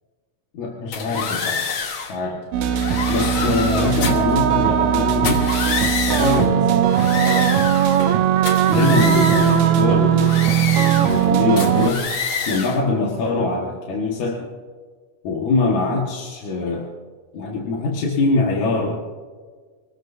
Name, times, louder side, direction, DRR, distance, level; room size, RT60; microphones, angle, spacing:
voice 1, 0.5-1.7 2.0-2.4 3.1-5.5 6.1-7.6 8.7-10.4 11.0-12.1 12.5-14.5 15.2-16.9 17.3-19.0, left 3 dB, 75° left, -2 dB, 3.1 m, -23 dB
sound 1, 0.9-2.2 2.7-4.3 5.1-6.5 6.9-8.2 8.5-9.7 10.2-11.3 11.6-12.8, left 5 dB, 50° left, 1.8 m, -27 dB
sound 2, 2.5-11.9, right 10 dB, 75° right, 2.0 m, -18 dB
26.5 x 19.0 x 2.7 m, 1.5 s
omnidirectional pair, 3.4 m